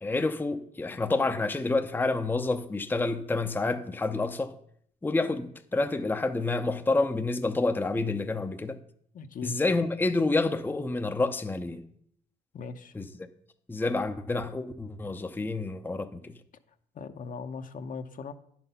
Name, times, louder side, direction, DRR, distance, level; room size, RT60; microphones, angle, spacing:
voice 1, 0.0-4.5 5.0-8.8 9.4-11.8 13.0-13.1 13.7-16.3, left 3 dB, 10° left, 0.7 m, -28 dB
voice 2, 9.1-9.5 12.5-12.9 16.9-18.3, left 5 dB, 45° left, 0.9 m, -39 dB
10.5 x 6.0 x 5.6 m
supercardioid pair, 80°, 19 cm